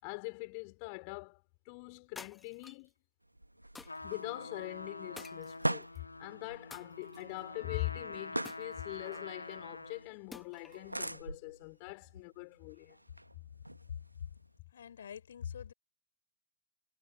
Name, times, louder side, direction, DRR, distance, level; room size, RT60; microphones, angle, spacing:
voice 1, 0.0-2.9 4.0-13.0, left 35 dB, 45° left, 4.5 m, -43 dB
sound 1, 2.2-2.9 3.8-4.2 5.2-6.0 6.7-7.4 8.4-9.3 10.3-10.9, left 4 dB, 10° left, 1.6 m, -52 dB
sound 2, 3.2-14.6, right 1 dB, 85° right, 1.7 m, -44 dB
Trumpet, 3.8-10.1, left 2 dB, 80° left, 2.1 m, -46 dB
voice 2, 14.7-15.7, left 8 dB, 65° left, 5.0 m, -43 dB
figure-of-eight pair, 90°, 0 cm